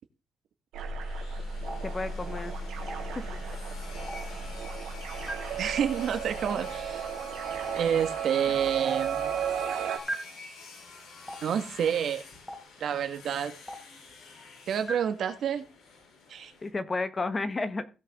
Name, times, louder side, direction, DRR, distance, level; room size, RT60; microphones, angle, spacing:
sound 1, 0.7-16.7, left 4 dB, 70° left, 6.6 m, -48 dB
sound 2, 0.7-10.0, right 5 dB, 90° right, 2.3 m, -34 dB
Stream, 1.7-1.8 2.9-3.0 4.1-4.2 5.3-5.4 6.5-6.6 7.7-7.8 8.9-9.0 10.1-10.2 11.3-11.4 12.5-12.6 13.7-13.8 14.9-15.0, equal, 10° left, 2.9 m, -33 dB
voice 1, 1.8-2.5 16.6-17.9, left 3 dB, 25° left, 11 dB, 1.2 m, -31 dB
voice 2, 5.6-7.1 7.7-9.3 11.4-12.2 12.8-13.5 14.7-15.6 16.3-16.5, right 8 dB, 65° right, 8 dB, 1.6 m, -28 dB
16.5 x 5.7 x 3.7 m, 0.31 s
cardioid pair, 90°, 0 cm